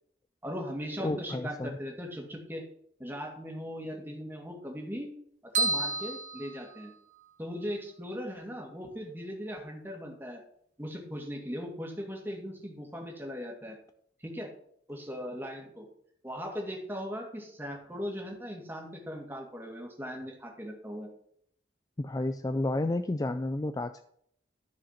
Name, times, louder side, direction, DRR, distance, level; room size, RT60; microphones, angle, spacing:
voice 1, 0.4-2.6 3.0-5.1 5.6-6.9 7.4-10.4 10.8-13.8 14.2-14.5 14.9-15.8 16.2-21.1, equal, 10° right, 1 dB, 2.1 m, -39 dB
voice 2, 1.0-1.8 22.0-24.0, left 2 dB, 20° left, 10 dB, 0.4 m, -31 dB
sound 1, 5.5-7.3, right 3 dB, 45° right, 1.4 m, -31 dB
13.0 x 5.0 x 5.8 m, 0.67 s
head